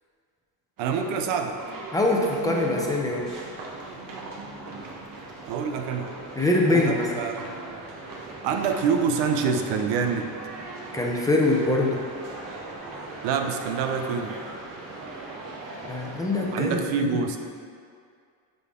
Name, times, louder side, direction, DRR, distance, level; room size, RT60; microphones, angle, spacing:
sound 1, 0.8-16.6, right 2 dB, 50° right, 1.3 m, -39 dB
voice 1, 0.8-1.6 5.5-6.1 6.7-7.5 8.4-10.3 13.2-14.4 16.5-17.4, right 6 dB, 85° right, 6 dB, 0.7 m, -26 dB
voice 2, 1.9-3.3 6.4-7.1 10.9-12.0 15.8-16.8, left 2 dB, 10° left, -1 dB, 0.7 m, -23 dB
9.4 x 3.9 x 3.7 m, 2.2 s
cardioid pair, 125°, 44 cm